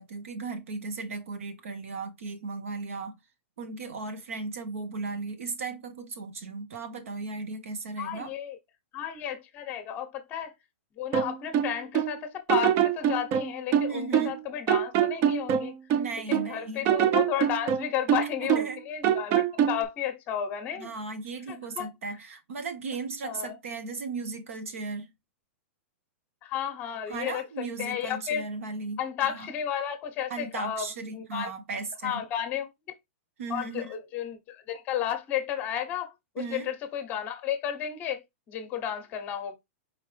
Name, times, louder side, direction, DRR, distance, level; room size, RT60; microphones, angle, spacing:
voice 1, 0.0-3.2 3.6-8.3 13.9-14.4 15.9-16.9 18.4-18.8 20.7-25.1 27.1-29.0 29.3-29.5 30.3-32.2 33.4-33.9 36.4-36.7, right 4 dB, 85° right, 1.4 m, -36 dB
voice 2, 8.0-8.6 8.9-10.5 11.0-15.8 16.3-20.9 21.8-21.9 23.2-23.5 26.4-27.4 27.8-28.4 29.0-31.5 32.0-32.7 33.5-39.5, left 10 dB, 25° left, 0.9 m, -33 dB
sound 1, 11.1-12.1 12.5-14.4 14.7-16.5 16.8-18.8 19.0-19.8, right 9 dB, 30° right, 0.4 m, -24 dB
4.7 x 3.3 x 3.3 m
supercardioid pair, 165°, 7 cm